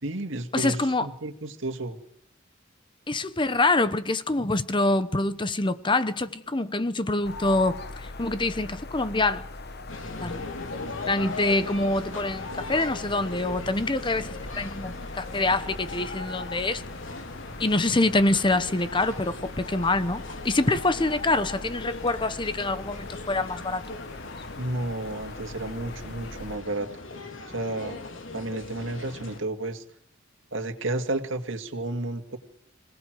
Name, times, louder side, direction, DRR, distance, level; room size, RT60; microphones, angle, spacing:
voice 1, 0.0-2.0 24.6-26.9 27.5-28.1 28.3-29.8 30.5-32.4, right 2 dB, 65° right, 2.3 m, -32 dB
voice 2, 0.5-1.1 3.1-9.4 10.2-10.4 11.1-16.8 17.6-23.8, left 2 dB, 25° left, 0.9 m, -25 dB
sound 1, 7.2-26.6, left 3 dB, 50° left, 1.3 m, -40 dB
sound 2, 9.9-29.4, left 2 dB, 70° left, 3.6 m, -40 dB
26.5 x 18.5 x 7.8 m
head